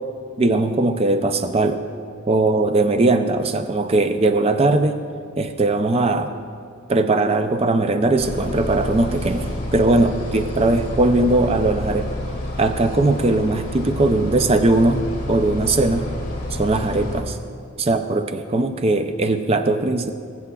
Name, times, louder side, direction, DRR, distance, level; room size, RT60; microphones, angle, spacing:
voice 1, 0.4-1.8 2.3-5.0 5.4-6.3 6.9-12.1 12.6-16.1 16.5-17.4 17.8-20.1, right 2 dB, 30° right, 8 dB, 0.4 m, -19 dB
sound 1, 8.2-17.2, left 1 dB, 40° left, 1.9 m, -29 dB
21.5 x 8.2 x 2.3 m, 2.2 s
head